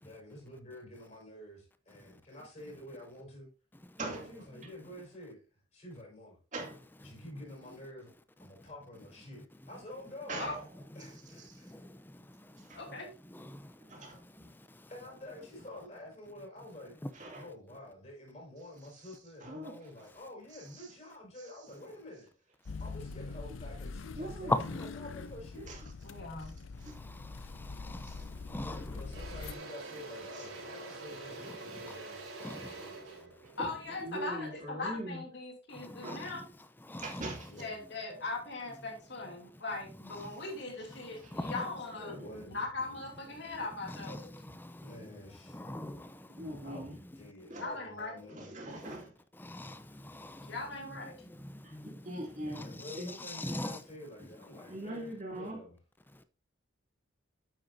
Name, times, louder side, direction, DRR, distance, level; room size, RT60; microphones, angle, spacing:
voice 1, 0.0-3.5 4.3-5.5 5.7-6.4 7.0-8.1 8.4-10.4 10.9-11.8 14.9-17.0 17.3-22.3 22.8-25.7 28.5-33.4 37.5-37.7 41.9-42.6 44.8-45.8 46.6-48.5 52.4-55.8, left 1 dB, 35° left, 4.6 m, -49 dB
voice 2, 4.0-4.3 6.5-6.8 10.3-10.6 11.4-11.6 12.6-12.8 13.8-14.6 17.1-17.4 19.4-19.8 20.7-20.8 24.2-24.6 25.6-25.8 26.8-27.0 28.0-28.2 30.3-30.4 33.4-33.7 34.0-35.2 36.0-36.2 37.0-37.5 41.2-41.3 42.1-42.6 46.4-46.9 47.5-47.7 48.3-49.1 51.6-52.6 52.9-53.1 54.7-55.6, right 1 dB, 40° right, 2.5 m, -42 dB
voice 3, 11.0-12.8 13.3-14.9 17.0-17.1 24.5-24.9 26.8-29.0 31.8-31.9 32.4-32.7 35.7-36.4 36.9-37.3 40.1-40.3 41.3-41.7 43.3-43.6 43.9-45.1 45.4-46.7 48.8-49.0 49.4-50.6 51.3-53.8 54.5-54.8 56.1-56.2, left 1 dB, 10° left, 0.5 m, -42 dB
voice 4, 12.7-13.1 26.0-26.6 33.6-36.4 37.6-42.2 42.5-44.3 47.6-48.2 50.5-51.2, left 3 dB, 55° left, 2.6 m, -40 dB
sound 1, 22.6-29.5, left 4 dB, 75° left, 0.6 m, -43 dB
Engine / Drill, 28.2-28.4 28.7-34.9, right 2 dB, 85° right, 3.7 m, -46 dB
9.1 x 7.9 x 2.6 m
head